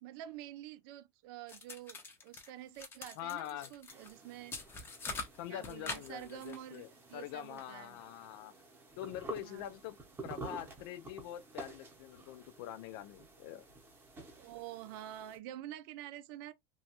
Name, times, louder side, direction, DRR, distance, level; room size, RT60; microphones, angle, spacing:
voice 1, 0.0-4.6 5.5-6.8 7.1-8.0 9.4-9.7 14.4-16.5, right 12 dB, 55° right, 0.4 m, -48 dB
sound 1, 1.5-2.5 2.8-4.1 4.5-6.8, left 3 dB, 15° left, 0.6 m, -44 dB
voice 2, 3.2-3.7 5.4-8.5 9.0-10.0 10.2-13.6, left 12 dB, 60° left, 0.4 m, -44 dB
sound 2, 3.9-15.4, right 3 dB, 15° right, 0.8 m, -51 dB
3.0 x 2.3 x 2.8 m
supercardioid pair, 160°, 14 cm